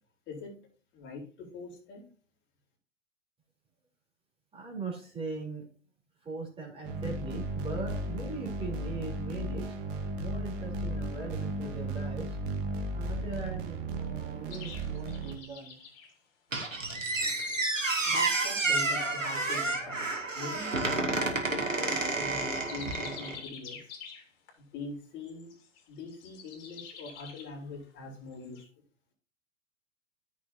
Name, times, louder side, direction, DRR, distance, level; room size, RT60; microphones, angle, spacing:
voice 1, 0.9-2.0 18.0-20.1 20.3-23.9 24.6-25.5 25.9-28.7, left 3 dB, 30° left, -1 dB, 4.2 m, -43 dB
voice 2, 4.5-5.6 6.2-9.6 10.2-12.4 12.9-15.8, right 4 dB, 15° right, -2 dB, 3.7 m, -40 dB
sound 1, 6.8-15.4, right 1 dB, 45° right, 2.2 m, -35 dB
sound 2, 14.5-16.1 16.6-19.0 21.3-24.5 25.3-27.6 28.3-28.6, left 6 dB, 50° left, 3.3 m, -47 dB
Squeak, 16.5-23.4, right 3 dB, 85° right, 2.6 m, -30 dB
14.5 x 6.4 x 2.8 m, 0.41 s
figure-of-eight pair, 100°, 37 cm